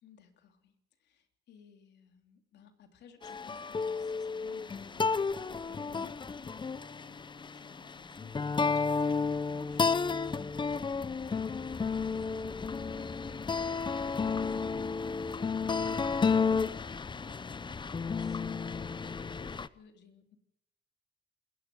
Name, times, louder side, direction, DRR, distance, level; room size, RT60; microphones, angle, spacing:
voice 1, 0.0-20.4, left 7 dB, 75° left, 6 dB, 3.2 m, -58 dB
sound 1, 3.2-19.7, left 5 dB, 25° left, 0.8 m, -32 dB
27.0 x 15.0 x 7.8 m, 0.76 s
cardioid pair, 80°, 18 cm